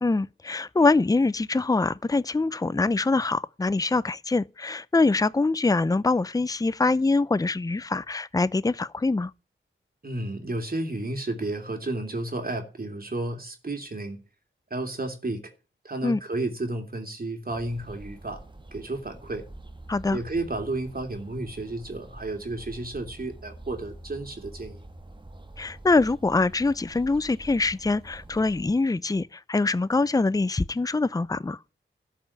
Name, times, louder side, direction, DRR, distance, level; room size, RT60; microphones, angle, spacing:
voice 1, 0.0-9.3 16.0-16.2 19.9-20.2 25.6-31.6, left 3 dB, 15° left, 0.5 m, -24 dB
voice 2, 10.0-14.2 14.7-15.4 15.8-18.4 18.7-19.4 20.1-24.8, right 2 dB, 45° right, 3.0 m, -32 dB
sound 1, 17.5-28.8, right 1 dB, 25° right, 1.4 m, -46 dB
13.0 x 5.5 x 8.7 m
wide cardioid pair, 60°, 21 cm